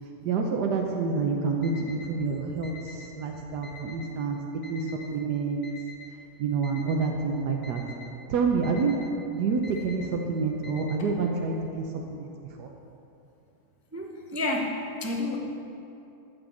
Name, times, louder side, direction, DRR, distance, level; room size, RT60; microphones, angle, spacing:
voice 1, 0.2-4.4 4.7-5.6 6.4-7.8 8.3-8.9 9.3-12.3 12.6-12.7, right 4 dB, 90° right, 1 dB, 1.4 m, -28 dB
Alarm, 1.6-2.1 2.6-3.1 3.6-4.1 4.6-5.1 5.6-6.1 6.6-7.1 7.6-8.1 8.6-9.1 9.6-10.1 10.6-11.2, left 4 dB, 65° left, 1.7 m, -46 dB
voice 2, 13.9-15.4, left 2 dB, 15° right, 0 dB, 0.4 m, -30 dB
13.0 x 5.3 x 7.2 m, 2.8 s
omnidirectional pair, 1.7 m